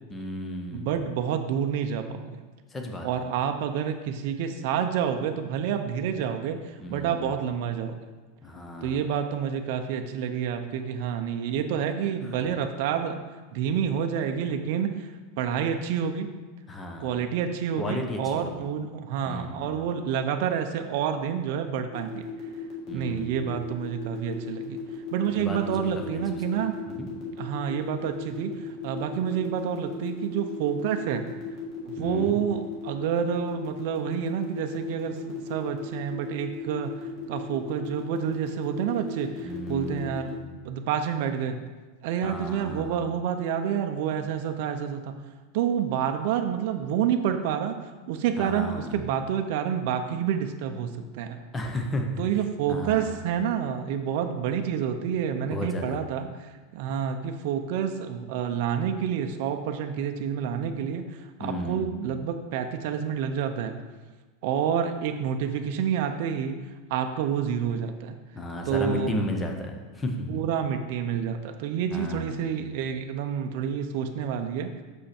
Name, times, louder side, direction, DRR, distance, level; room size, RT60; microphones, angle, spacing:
voice 1, 0.1-0.9 2.7-3.1 6.8-7.2 8.4-9.1 16.7-17.1 17.8-18.5 19.3-19.8 22.9-23.5 25.2-26.6 26.9-27.1 32.0-32.4 39.4-40.3 42.2-43.0 48.4-49.0 51.5-52.1 52.7-53.1 55.5-56.0 61.4-61.9 68.3-70.3 71.9-72.4, left 1 dB, 10° left, 2 dB, 0.7 m, -34 dB
voice 2, 0.7-2.4 3.0-8.1 8.8-13.2 13.5-15.1 15.4-16.3 17.0-22.2 22.9-24.8 25.1-26.8 27.4-31.3 31.8-41.6 42.0-45.1 45.5-47.8 48.1-51.4 52.2-63.7 64.4-66.6 66.9-68.2 68.7-69.2 70.3-74.7, right 8 dB, 50° right, 6 dB, 0.5 m, -28 dB
sound 1, 21.9-40.3, left 8 dB, 30° left, 1.6 m, -37 dB
6.4 x 5.5 x 4.3 m, 1.3 s
supercardioid pair, 175°, 0 cm